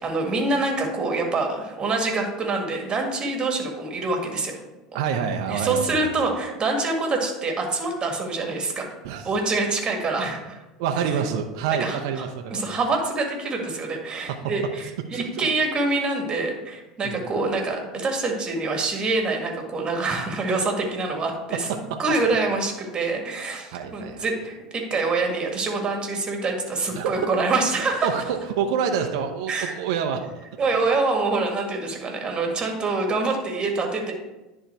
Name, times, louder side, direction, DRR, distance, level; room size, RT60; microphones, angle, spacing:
voice 1, 0.0-4.6 5.5-8.9 9.2-10.6 11.8-12.2 12.5-28.1 29.5-29.7 30.6-34.1, right 3 dB, 30° right, 2 dB, 1.8 m, -25 dB
voice 2, 4.9-6.1 9.0-9.3 10.8-12.8 14.3-14.5 15.1-15.5 17.0-17.2 23.7-24.2 26.9-27.3 28.0-30.3, right 7 dB, 65° right, 5 dB, 0.7 m, -27 dB
10.5 x 3.7 x 4.5 m, 1.0 s
hypercardioid pair, 80°, 3 cm